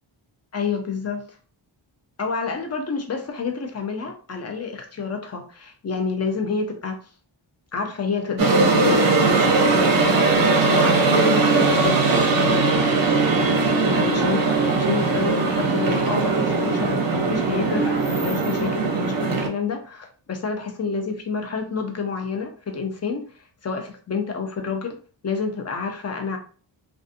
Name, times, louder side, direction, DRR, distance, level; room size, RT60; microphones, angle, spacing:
voice 1, 0.5-1.2 2.2-7.0 7.7-10.2 10.7-12.8 13.5-25.0 25.2-26.4, left 5 dB, 35° left, 5 dB, 0.5 m, -29 dB
sound 1, 8.4-19.5, right 3 dB, 45° right, 0.6 m, -20 dB
2.4 x 2.4 x 2.5 m, 0.41 s
wide cardioid pair, 125°, 50 cm